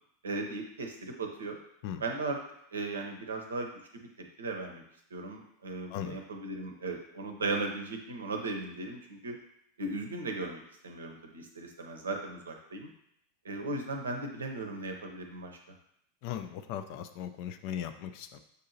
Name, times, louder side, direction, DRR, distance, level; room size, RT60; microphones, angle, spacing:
voice 1, 0.2-1.6 2.0-2.4 2.7-3.7 4.2-4.8 5.1-9.4 9.8-12.9 13.4-15.5, right 2 dB, 75° right, 3 dB, 0.6 m, -37 dB
voice 2, 16.2-18.4, left 10 dB, 50° left, 9 dB, 0.4 m, -38 dB
6.5 x 2.7 x 2.7 m, 0.74 s
figure-of-eight pair, 85°, 0 cm